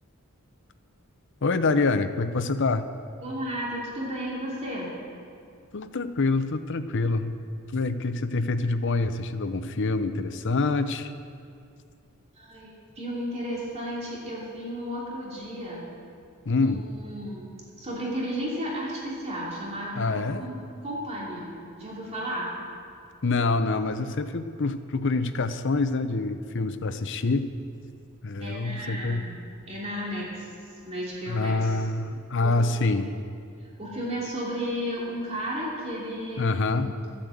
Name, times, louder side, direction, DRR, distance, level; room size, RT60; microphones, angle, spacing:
voice 1, 1.4-2.8 5.7-7.3 7.7-11.1 16.5-16.8 19.9-20.5 23.2-27.5 28.2-29.2 31.3-33.1 36.4-36.9, left 3 dB, 55° left, 10 dB, 0.7 m, -26 dB
voice 2, 3.2-5.0 12.4-15.9 16.6-17.5 17.8-20.6 20.8-22.5 28.4-30.5 30.8-31.9 32.4-33.0 33.8-37.0, equal, 30° right, -5 dB, 3.0 m, -34 dB
13.0 x 8.6 x 7.8 m, 2.3 s
head